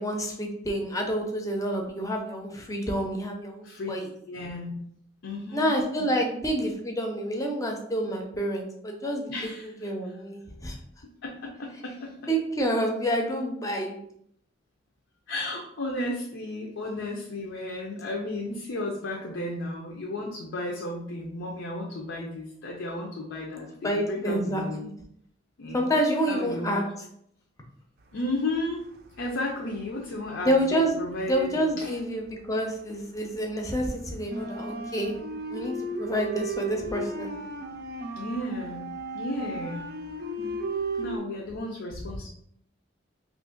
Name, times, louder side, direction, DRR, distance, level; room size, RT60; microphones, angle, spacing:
voice 1, 0.0-4.1 5.5-10.8 12.3-14.0 23.8-24.9 25.7-26.9 30.4-31.0 31.3-35.1 35.5-37.3, equal, 15° left, 2 dB, 0.5 m, -28 dB
voice 2, 4.3-4.8 5.2-5.7 6.0-6.4 9.3-9.7 11.2-12.2 15.3-24.9 25.6-25.9 26.3-26.8 28.1-28.8 29.2-32.0 38.1-40.0 40.4-40.6 41.0-42.3, left 1 dB, 80° left, -1 dB, 0.5 m, -34 dB
sound 1, 28.5-29.4 29.7-32.7 33.0-41.2, right 2 dB, 50° right, 0.4 m, -35 dB
2.9 x 2.5 x 3.7 m, 0.71 s
head